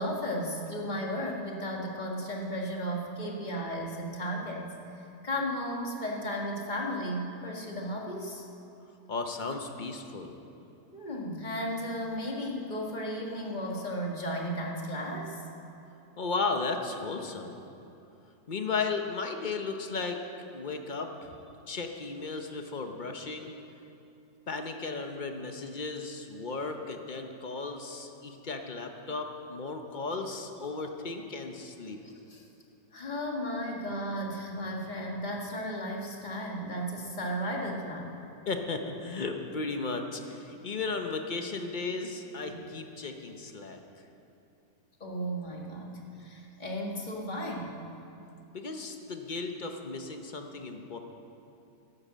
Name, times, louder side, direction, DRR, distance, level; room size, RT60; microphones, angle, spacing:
voice 1, 0.0-4.6 5.2-8.5 10.9-15.4 32.0-32.4 32.9-38.1 42.5-42.6 45.0-47.8, equal, 25° left, -1 dB, 1.7 m, -34 dB
voice 2, 9.1-10.4 16.2-17.5 18.5-20.2 20.5-23.5 24.5-32.0 38.5-43.8 48.5-51.0, left 4 dB, 45° left, 5 dB, 0.6 m, -35 dB
12.0 x 9.7 x 7.4 m, 2.9 s
omnidirectional pair, 1.9 m